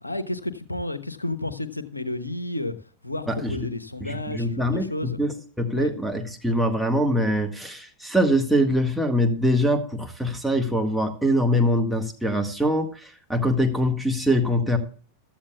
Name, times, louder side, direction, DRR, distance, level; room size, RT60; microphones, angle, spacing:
voice 1, 0.0-2.7 3.0-5.2 5.7-6.0, left 2 dB, 85° left, 1.1 m, -31 dB
voice 2, 4.0-14.8, equal, ahead, 1.7 m, -23 dB
16.0 x 13.0 x 2.3 m
figure-of-eight pair, 90°, 0 cm